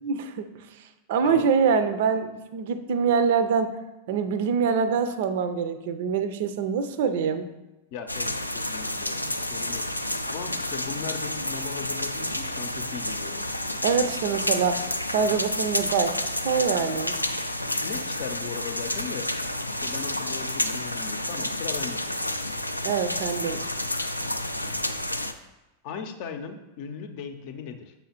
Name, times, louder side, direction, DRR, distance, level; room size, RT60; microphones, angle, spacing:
voice 1, 0.0-0.4 1.1-3.7 4.1-7.5 13.8-14.8 15.1-17.1 22.8-23.6, right 6 dB, 55° right, 11 dB, 0.5 m, -24 dB
voice 2, 7.9-9.9 10.3-13.5 17.8-19.3 19.7-22.0 25.8-27.9, left 6 dB, 45° left, 8 dB, 0.6 m, -38 dB
sound 1, 8.1-25.3, left 1 dB, 85° left, 0.3 m, -30 dB
7.1 x 5.5 x 2.9 m, 1.0 s
figure-of-eight pair, 90°, 0 cm